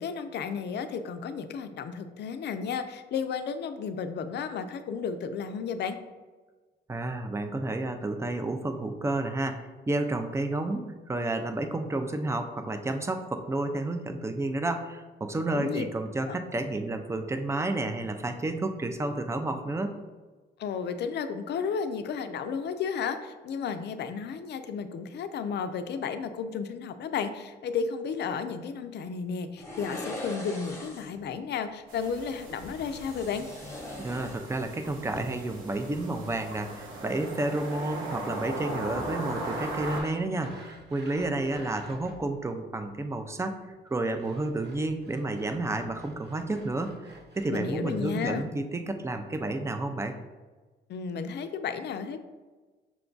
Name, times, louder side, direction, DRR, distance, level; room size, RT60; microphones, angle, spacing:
voice 1, 0.0-6.0 15.5-15.8 16.3-16.4 20.6-33.5 47.5-48.5 50.9-52.2, left 6 dB, 60° left, 9 dB, 0.5 m, -33 dB
voice 2, 6.9-19.9 34.0-43.6 43.8-50.2, right 2 dB, 15° right, 7 dB, 0.4 m, -31 dB
sound 1, 29.6-31.2 32.8-34.8 35.0-35.2, left 1 dB, 15° left, 1.0 m, -41 dB
sound 2, 31.9-40.0, right 1 dB, 80° right, 1.1 m, -38 dB
Sawing, 39.2-42.4 43.9-48.4, right 2 dB, 55° right, 0.8 m, -50 dB
6.0 x 2.3 x 3.8 m, 1.3 s
cardioid pair, 90°, 20 cm